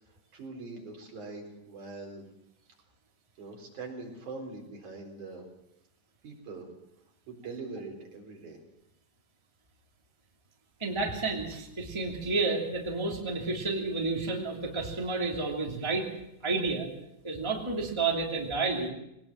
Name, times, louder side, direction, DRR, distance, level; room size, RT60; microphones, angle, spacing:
voice 1, 0.3-2.2 3.4-5.5 6.2-6.7 7.3-8.6, right 3 dB, 65° right, 1 dB, 5.5 m, -42 dB
voice 2, 10.8-16.1 16.4-16.9 17.2-18.9, right 3 dB, 10° right, 0 dB, 2.6 m, -30 dB
21.5 x 19.5 x 7.5 m, 0.83 s
omnidirectional pair, 3.7 m